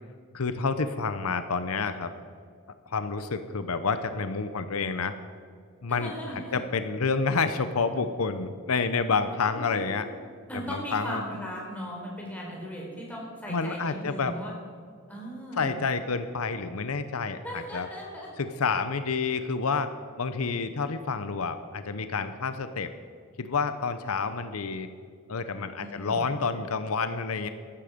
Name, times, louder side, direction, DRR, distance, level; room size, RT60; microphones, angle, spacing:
voice 1, 0.3-2.1 2.9-5.1 5.8-10.1 10.5-11.2 13.5-14.4 15.6-17.9 18.4-19.9 20.2-22.9 23.4-24.9 25.3-27.5, left 4 dB, 80° left, 10 dB, 0.8 m, -29 dB
voice 2, 5.9-6.6 9.4-10.1 10.5-14.5 15.1-15.7 17.4-18.3 25.8-26.3, equal, 5° left, -3 dB, 4.3 m, -38 dB
14.0 x 13.0 x 5.2 m, 2.1 s
head